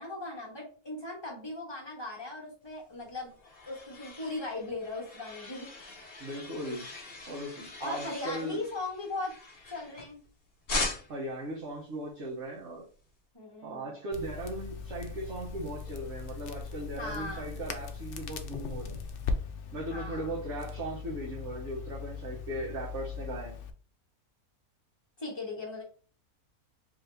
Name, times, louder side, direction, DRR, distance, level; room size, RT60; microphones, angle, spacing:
voice 1, 0.0-3.3 3.7-5.7 7.8-9.3 9.7-10.2 13.3-13.9 17.0-17.5 19.9-20.3 25.2-25.8, left 2 dB, 20° left, -2 dB, 1.2 m, -38 dB
sound 1, 2.9-10.3 10.7-11.3, left 2 dB, 60° left, 1.6 m, -40 dB
voice 2, 6.2-6.8 7.3-8.6 11.1-12.8 13.6-19.0 19.7-23.5, right 1 dB, 55° right, -4 dB, 1.2 m, -38 dB
Crackle, 14.1-23.7, left 5 dB, 90° left, 0.5 m, -39 dB
3.5 x 2.6 x 3.4 m, 0.40 s
omnidirectional pair, 1.5 m